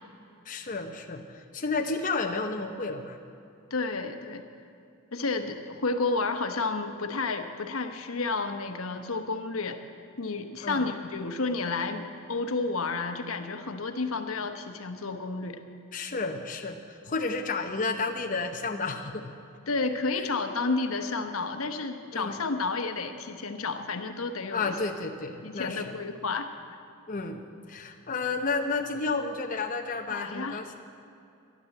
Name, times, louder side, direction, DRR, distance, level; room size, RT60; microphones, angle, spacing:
voice 1, 0.4-3.2 10.6-10.9 15.9-19.3 22.1-22.4 24.5-26.0 27.1-27.4 27.7-30.7, left 3 dB, 40° left, 3 dB, 0.8 m, -31 dB
voice 2, 3.7-4.4 5.1-9.8 10.2-15.6 19.7-24.7 25.4-26.5 30.1-30.6, left 3 dB, 80° left, 7 dB, 1.0 m, -31 dB
12.0 x 11.0 x 7.7 m, 2.7 s
head